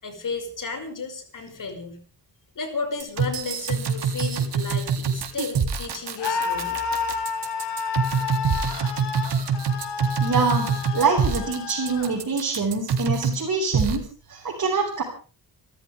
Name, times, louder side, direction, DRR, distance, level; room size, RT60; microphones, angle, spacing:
voice 1, 0.0-2.0 2.6-6.9, left 4 dB, 50° left, 5 dB, 6.0 m, -33 dB
sound 1, 3.0-13.4 13.7-14.0, right 6 dB, 80° right, 3.6 m, -25 dB
Screaming, 6.2-12.1, left 6 dB, 90° left, 5.2 m, -30 dB
voice 2, 10.2-15.0, right 4 dB, 45° right, -2 dB, 5.8 m, -25 dB
29.5 x 14.0 x 3.5 m, 0.38 s
wide cardioid pair, 145°, 41 cm